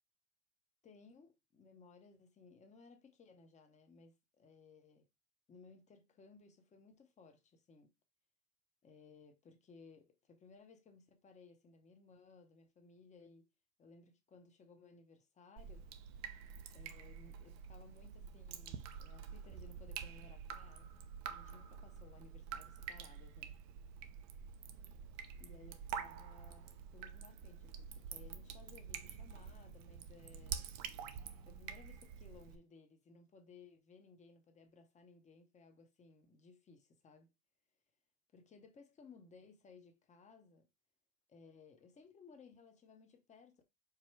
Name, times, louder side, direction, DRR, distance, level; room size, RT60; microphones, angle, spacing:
voice 1, 0.8-5.1 5.5-7.9 8.8-13.5 13.8-15.9 16.7-20.9 21.3-23.5 25.4-30.7 31.5-37.3 38.3-40.7 41.3-43.6, left 4 dB, 20° left, 0.8 m, -61 dB
Drip, 15.6-32.6, right 8 dB, 50° right, 0.7 m, -48 dB
4.8 x 2.2 x 4.4 m
supercardioid pair, 130°, 34 cm